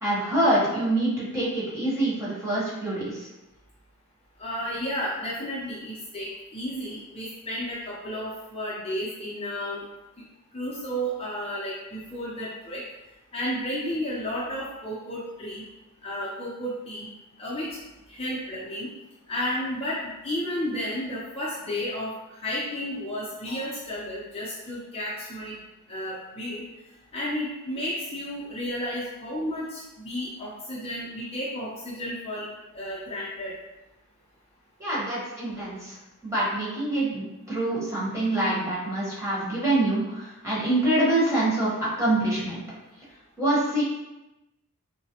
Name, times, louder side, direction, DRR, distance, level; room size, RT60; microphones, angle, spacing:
voice 1, 0.0-3.3 34.8-36.0 36.2-42.6 43.4-43.8, right 1 dB, 15° right, -8 dB, 1.1 m, -25 dB
voice 2, 4.4-9.8 10.5-12.8 13.3-15.6 16.0-17.1 17.4-17.7 18.1-18.9 19.3-22.1 22.4-25.6 25.9-26.6 27.1-32.5 32.7-33.5, equal, 25° left, -7 dB, 0.6 m, -32 dB
3.8 x 2.1 x 2.8 m, 1.0 s
head